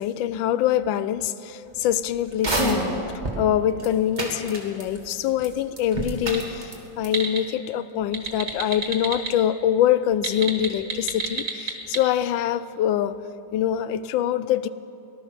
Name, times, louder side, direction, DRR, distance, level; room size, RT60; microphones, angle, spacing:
voice 1, 0.0-2.8 3.4-13.2 13.5-14.7, left 10 dB, 85° left, 15 dB, 1.3 m, -24 dB
sound 1, 2.3-3.4 3.8-3.9 4.2-5.1 5.4-5.5 5.8-6.7 7.0-7.1, right 2 dB, 25° right, 1.8 m, -27 dB
sound 2, 6.3-6.4 6.8-7.4 8.0-9.3 10.1-12.0, right 4 dB, 45° right, 2.0 m, -28 dB
18.5 x 12.0 x 6.5 m, 2.8 s
omnidirectional pair, 2.1 m